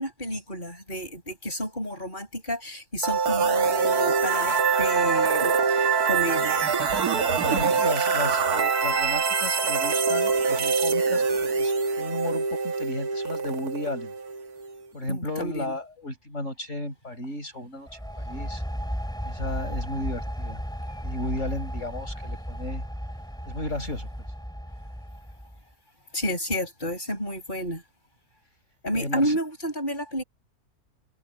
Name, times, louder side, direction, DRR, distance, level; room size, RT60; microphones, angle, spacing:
voice 1, 0.0-6.7 15.1-15.7 26.1-27.8 28.8-30.2, equal, 30° left, 8.2 m, -31 dB
sound 1, 3.0-14.8, right 5 dB, 85° right, 2.0 m, -24 dB
voice 2, 7.0-14.1 14.9-18.6 19.2-20.6 21.0-22.8 23.5-24.1 28.9-29.4, left 1 dB, 55° left, 7.3 m, -34 dB
sound 2, 17.9-25.6, equal, 5° left, 5.7 m, -34 dB
omnidirectional pair, 1.6 m